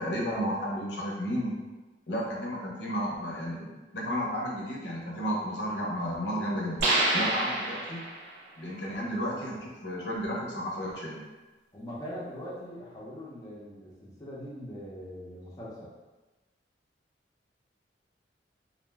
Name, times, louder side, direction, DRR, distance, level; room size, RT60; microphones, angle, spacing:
voice 1, 0.0-1.6 2.1-6.8 7.1-8.0 8.6-11.3, equal, 70° left, -3 dB, 0.6 m, -32 dB
sound 1, 6.8-8.4, right 2 dB, 85° right, 0.7 m, -27 dB
voice 2, 11.7-15.9, equal, 20° left, -7 dB, 0.5 m, -41 dB
2.5 x 2.1 x 3.2 m, 1.2 s
head